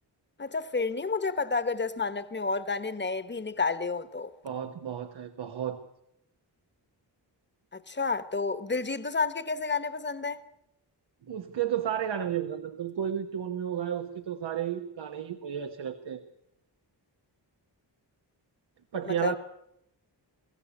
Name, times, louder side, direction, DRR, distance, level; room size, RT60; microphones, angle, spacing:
voice 1, 0.4-4.3 7.7-10.4 19.0-19.4, left 4 dB, 25° left, 1.1 m, -30 dB
voice 2, 4.4-5.8 11.3-16.2 18.9-19.4, right 9 dB, 80° right, 1.3 m, -32 dB
23.0 x 16.0 x 8.4 m
wide cardioid pair, 160°, 42 cm